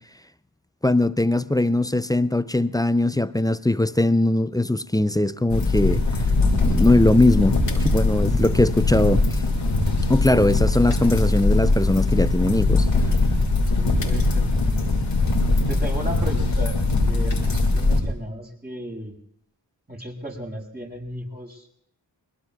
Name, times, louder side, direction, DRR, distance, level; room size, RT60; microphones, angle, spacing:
voice 1, 0.8-6.0 6.5-9.2 10.1-12.9, left 1 dB, 10° left, 0.5 m, -20 dB
sound 1, 5.5-18.0, left 2 dB, 80° left, 2.4 m, -21 dB
voice 2, 13.8-14.5 15.7-19.2 19.9-21.7, equal, 20° right, 6.0 m, -35 dB
22.0 x 21.0 x 2.4 m
cardioid pair, 40°, 44 cm